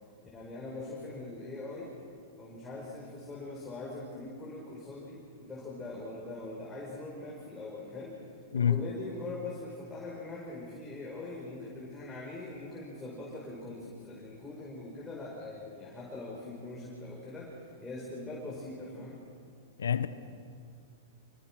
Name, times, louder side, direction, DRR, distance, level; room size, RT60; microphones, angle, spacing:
voice 1, 0.3-1.9 2.4-8.2 8.5-19.2, left 2 dB, 15° left, 5.5 m, -42 dB
voice 2, 8.5-8.8 19.8-20.1, left 8 dB, 90° left, 1.1 m, -26 dB
25.5 x 21.0 x 6.3 m
hypercardioid pair, 120°, 0 cm